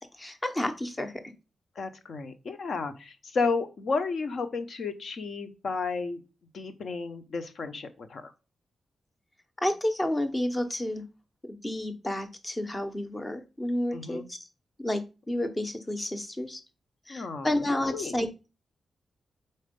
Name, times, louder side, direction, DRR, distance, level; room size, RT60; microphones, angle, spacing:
voice 1, 0.2-1.2 9.6-11.0 11.6-14.4 14.8-15.0 15.3-16.6 17.1-18.3, left 1 dB, 15° left, 9 dB, 0.7 m, -30 dB
voice 2, 1.8-6.2 6.5-8.3 13.9-14.2 17.1-18.1, left 4 dB, 50° left, 10 dB, 0.8 m, -32 dB
4.3 x 4.3 x 5.2 m, 0.29 s
wide cardioid pair, 175°, 0 cm